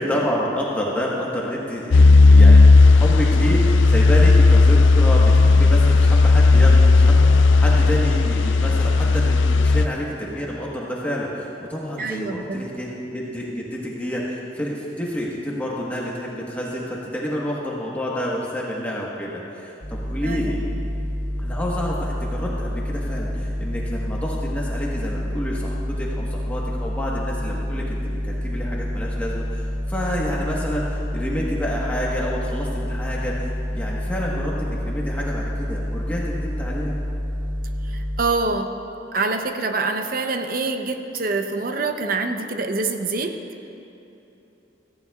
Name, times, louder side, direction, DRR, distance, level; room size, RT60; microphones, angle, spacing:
voice 1, 0.0-20.6 21.4-36.9, equal, 10° left, -5 dB, 1.2 m, -29 dB
sound 1, 1.9-9.9, left 3 dB, 90° left, 0.5 m, -13 dB
voice 2, 12.0-12.7 20.2-20.5 37.9-38.7 39.1-43.4, right 3 dB, 50° right, 6 dB, 0.7 m, -25 dB
sound 2, 19.8-38.2, equal, 25° left, 0.9 m, -28 dB
17.0 x 14.5 x 2.4 m, 3.0 s
head